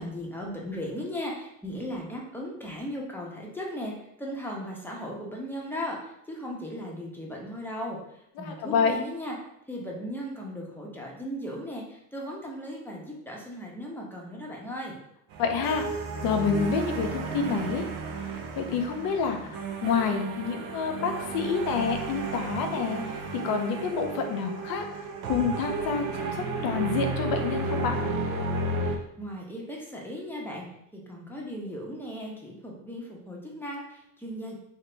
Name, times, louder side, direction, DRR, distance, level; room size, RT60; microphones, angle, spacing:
voice 1, 0.0-9.4 9.7-15.0 28.9-30.6 30.9-34.6, equal, 5° left, -2 dB, 1.0 m, -37 dB
voice 2, 8.4-9.0 15.4-15.9 16.2-17.9 18.5-28.0, left 6 dB, 60° left, 5 dB, 0.7 m, -28 dB
sound 1, 15.3-29.0, right 3 dB, 60° right, 0.7 m, -33 dB
2.8 x 2.6 x 3.3 m, 0.76 s
hypercardioid pair, 70°, 40 cm